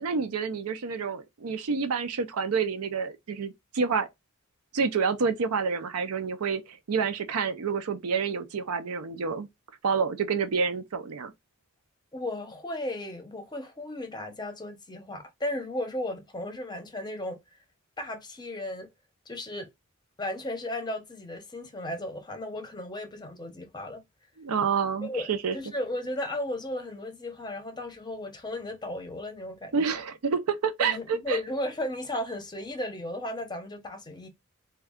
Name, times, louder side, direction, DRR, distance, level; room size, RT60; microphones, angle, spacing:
voice 1, 0.0-4.1 4.7-9.5 9.8-11.3 24.4-25.6 29.7-31.4, right 5 dB, 75° right, 0.5 m, -28 dB
voice 2, 12.1-17.4 18.0-18.9 19.3-19.7 20.2-24.0 25.0-29.9 30.8-34.3, left 1 dB, 20° left, 0.7 m, -35 dB
3.5 x 2.2 x 3.5 m
head